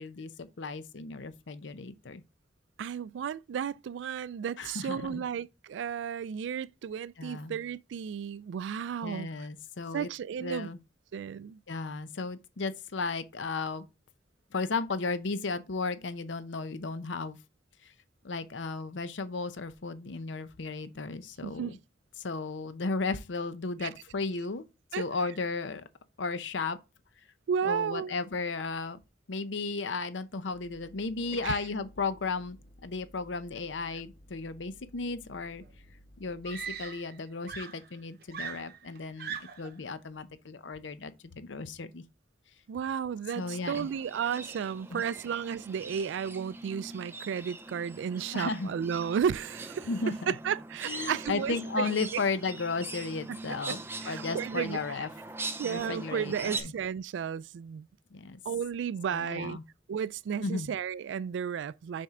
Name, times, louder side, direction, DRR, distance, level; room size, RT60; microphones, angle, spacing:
voice 1, 0.0-2.2 4.6-5.2 7.2-7.6 9.0-10.1 10.4-10.8 11.7-13.8 14.5-17.4 17.8-17.9 18.2-21.8 22.2-24.6 25.0-25.8 26.2-26.8 27.6-29.0 29.3-32.6 32.8-35.6 36.2-42.0 43.4-43.9 44.9-45.0 48.3-48.7 49.9-50.3 50.8-53.8 54.1-55.1 55.6-56.7 58.1-58.4 59.1-59.6 60.4-60.7, left 3 dB, 90° left, 0.7 m, -34 dB
voice 2, 2.8-9.3 9.9-10.7 11.1-11.6 21.4-21.7 23.8-23.9 24.9-25.0 27.5-28.1 31.4-31.6 42.7-49.9 50.3-52.2 53.3-53.4 53.7-54.8 55.6-57.9 58.5-59.6 59.9-62.0, right 7 dB, 85° right, 0.3 m, -33 dB
sound 1, 30.5-37.0, equal, 55° left, 1.9 m, -56 dB
Screaming, 35.6-35.7 36.4-37.2 37.5-39.8 40.8-41.0, right 7 dB, 55° right, 0.7 m, -40 dB
sound 2, 43.4-56.6, right 2 dB, 15° right, 0.5 m, -42 dB
6.4 x 4.4 x 3.7 m
head